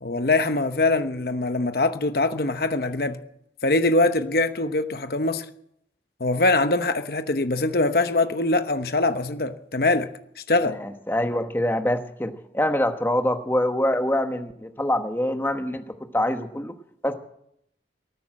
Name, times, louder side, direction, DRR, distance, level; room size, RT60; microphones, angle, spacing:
voice 1, 0.0-3.2 3.6-5.4 6.2-10.1 10.5-10.8, left 2 dB, 60° left, 0.9 m, -23 dB
voice 2, 10.7-16.7 17.0-17.1, left 1 dB, 10° left, 1.1 m, -25 dB
19.5 x 9.6 x 7.6 m
head